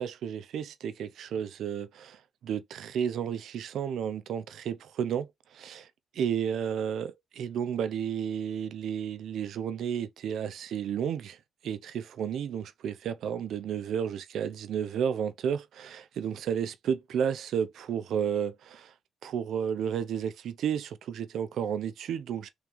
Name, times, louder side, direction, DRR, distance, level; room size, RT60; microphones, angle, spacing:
voice 1, 0.0-5.9 6.1-11.4 11.6-18.9 19.2-22.5, right 8 dB, 70° right, 0.5 m, -32 dB
3.5 x 3.1 x 3.4 m
cardioid pair, 90°, 0 cm